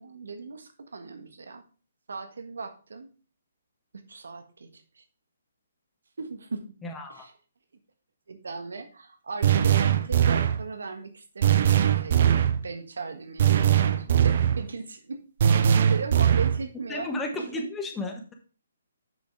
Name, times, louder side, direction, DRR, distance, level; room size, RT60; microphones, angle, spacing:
voice 1, 0.0-1.6 2.1-3.1 4.1-5.0 6.2-6.6 7.1-7.3 8.3-15.2 15.9-17.7, right 4 dB, 70° right, 8 dB, 1.4 m, -38 dB
voice 2, 6.8-7.3 16.9-18.3, left 2 dB, 10° left, 2 dB, 1.3 m, -33 dB
sound 1, 9.4-10.6 11.4-12.6 13.4-14.6 15.4-16.6, right 9 dB, 50° right, 0.7 m, -21 dB
8.0 x 6.7 x 3.5 m, 0.36 s
figure-of-eight pair, 135°, 0 cm